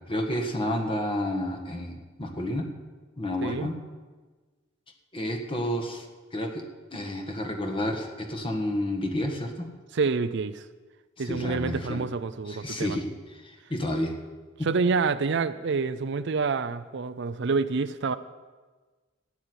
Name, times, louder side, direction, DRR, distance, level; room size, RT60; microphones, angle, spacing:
voice 1, 0.1-2.7 3.2-3.7 5.1-6.0 6.3-6.6 6.9-9.7 11.2-12.0 12.5-13.1 13.4-14.1 14.6-14.7, left 1 dB, 25° left, 2 dB, 1.6 m, -30 dB
voice 2, 9.9-10.7 11.2-13.0 14.6-18.2, right 4 dB, 60° right, 13 dB, 0.5 m, -27 dB
13.5 x 9.6 x 8.1 m, 1.3 s
head